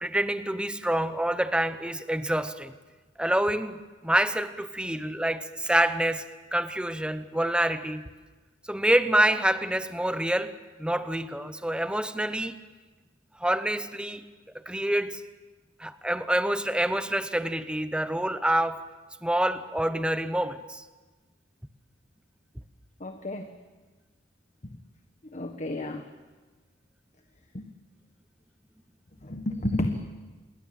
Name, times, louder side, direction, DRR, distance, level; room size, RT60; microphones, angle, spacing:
voice 1, 0.0-2.7 3.2-6.3 6.5-8.0 8.7-12.6 13.4-14.2 14.7-15.2 15.8-18.9 19.2-20.8, right 1 dB, 5° right, 11 dB, 0.9 m, -27 dB
voice 2, 23.0-23.6 25.2-26.1 27.5-27.7 29.2-30.0, left 1 dB, 35° left, 6 dB, 1.4 m, -31 dB
27.5 x 22.0 x 7.6 m, 1.3 s
head